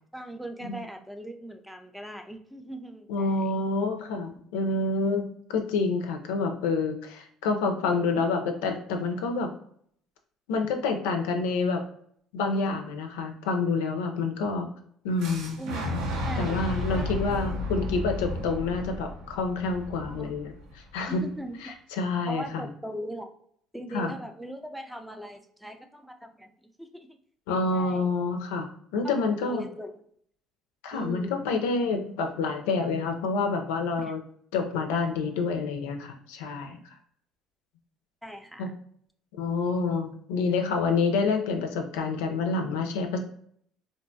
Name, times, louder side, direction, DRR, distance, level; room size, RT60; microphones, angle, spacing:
voice 1, 0.1-3.4 15.6-17.1 20.1-20.4 21.1-21.7 22.3-23.3 23.7-26.5 26.8-27.2 27.7-28.1 29.0-29.1 29.5-29.9 30.9-31.4 34.0-34.2 38.2-38.7, right 1 dB, ahead, 5 dB, 0.4 m, -40 dB
voice 2, 3.1-9.5 10.5-11.8 12.3-14.7 15.0-15.6 16.4-21.2 21.6-22.7 23.9-24.1 27.5-28.7 28.9-29.6 30.8-34.2 34.5-36.8 38.6-38.7 39.4-43.2, left 4 dB, 85° left, 5 dB, 0.4 m, -28 dB
Boom, 15.2-21.1, left 1 dB, 75° right, 0.5 m, -33 dB
2.7 x 2.2 x 2.5 m, 0.64 s
supercardioid pair, 80°, 0 cm